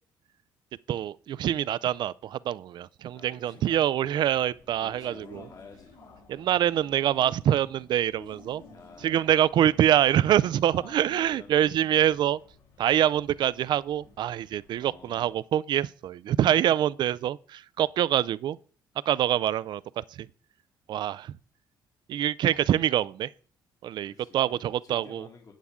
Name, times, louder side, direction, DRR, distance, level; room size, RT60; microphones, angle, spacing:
voice 1, 0.9-5.4 6.3-8.6 9.0-12.4 12.8-18.6 19.1-20.3 20.9-21.3 22.1-23.3 23.8-25.3, right 11 dB, 65° right, 0.4 m, -25 dB
voice 2, 3.1-4.0 4.8-6.0 8.7-9.3 10.7-11.9 14.7-15.4 24.1-25.5, left 4 dB, 45° left, 2.0 m, -50 dB
sound 1, 4.3-15.3, left 3 dB, 70° left, 4.6 m, -55 dB
11.5 x 8.3 x 3.6 m
cardioid pair, 85°, 8 cm